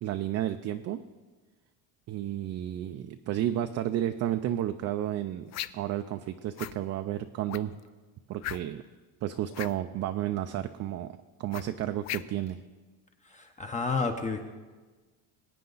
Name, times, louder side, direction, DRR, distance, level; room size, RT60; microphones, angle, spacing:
voice 1, 0.0-1.0 2.1-7.8 8.3-8.8 9.2-12.6, right 12 dB, 45° right, 8 dB, 0.5 m, -32 dB
sound 1, 5.5-5.9 6.6-6.8 7.5-7.8 8.4-8.9 9.5-9.8 11.5-12.5, left 14 dB, 45° left, 0.5 m, -37 dB
voice 2, 13.3-14.4, left 4 dB, 20° left, 4 dB, 0.7 m, -31 dB
21.0 x 9.2 x 3.9 m, 1.3 s
cardioid pair, 150°, 38 cm